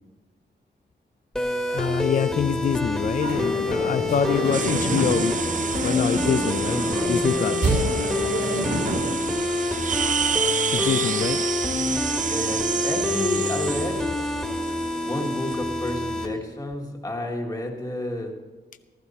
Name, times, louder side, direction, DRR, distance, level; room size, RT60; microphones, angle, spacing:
sound 1, 1.3-16.3, left 2 dB, 5° left, 1.6 m, -27 dB
voice 1, 1.7-5.3 5.8-6.8 7.1-7.7 10.7-11.4, left 7 dB, 45° left, 12 dB, 0.4 m, -25 dB
sound 2, 3.2-9.2, right 2 dB, 65° right, 3.0 m, -28 dB
sound 3, 4.5-15.9, right 7 dB, 45° right, 0.4 m, -30 dB
voice 2, 6.6-8.4 12.3-14.1 15.0-18.3, left 1 dB, 20° left, 1 dB, 1.5 m, -31 dB
15.0 x 14.0 x 4.2 m, 1.3 s
wide cardioid pair, 170°, 19 cm